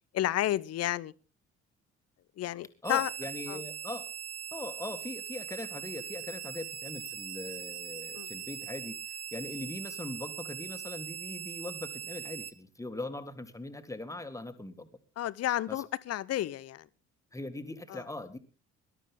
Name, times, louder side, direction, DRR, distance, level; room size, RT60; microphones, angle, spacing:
voice 1, 0.1-1.1 2.4-3.1 3.5-3.6 8.1-8.3 15.2-16.8 17.9-18.0, left 13 dB, 45° left, 0.8 m, -31 dB
voice 2, 2.8-4.1 4.5-14.9 15.7-15.8 17.3-18.4, left 2 dB, 10° left, 2.0 m, -41 dB
sound 1, 2.8-12.5, right 9 dB, 40° right, 1.2 m, -41 dB
20.5 x 12.0 x 3.6 m
figure-of-eight pair, 50°, 35 cm